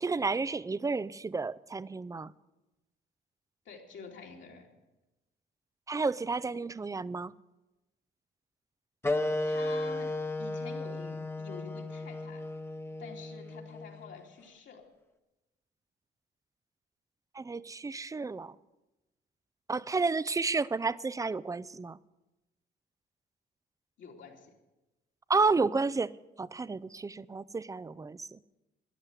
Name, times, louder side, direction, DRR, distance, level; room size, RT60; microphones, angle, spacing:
voice 1, 0.0-2.3 5.9-7.3 17.3-18.6 19.7-22.0 25.3-26.1 26.4-28.4, right 4 dB, 15° right, 0.4 m, -31 dB
voice 2, 3.6-4.7 9.2-10.1 10.4-12.4 13.0-14.8 24.0-24.5, left 5 dB, 70° left, 3.1 m, -48 dB
sound 1, 9.0-14.2, left 2 dB, 10° left, 1.0 m, -34 dB
13.5 x 10.5 x 8.3 m
cardioid pair, 90°, 20 cm